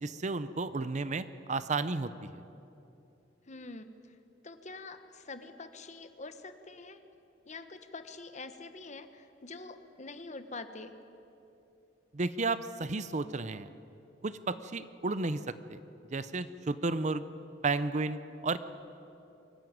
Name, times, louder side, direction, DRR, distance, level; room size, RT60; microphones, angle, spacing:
voice 1, 0.0-2.4 12.1-13.7 14.2-15.4 15.7-15.8 16.1-17.2 17.6-18.6, right 3 dB, 40° right, 13 dB, 0.7 m, -32 dB
voice 2, 3.5-4.2 4.4-7.0 7.4-10.9, left 3 dB, 40° left, 9 dB, 1.1 m, -45 dB
24.0 x 14.0 x 9.5 m, 2.8 s
head